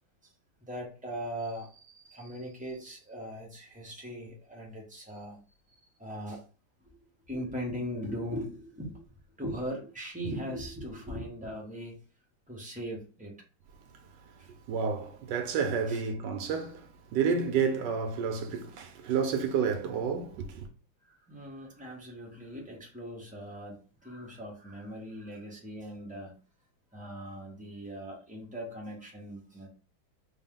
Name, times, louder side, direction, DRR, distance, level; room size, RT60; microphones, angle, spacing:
voice 1, 0.6-5.4 6.0-6.4 6.8-6.9 7.3-9.1 9.4-12.0 12.5-13.3 14.4-14.5 15.9-16.0 21.0-26.3 26.9-29.7, equal, 10° right, 0.5 m, -39 dB
voice 2, 14.7-20.6, right 6 dB, 75° right, 1.2 m, -30 dB
4.0 x 2.2 x 3.7 m
omnidirectional pair, 2.0 m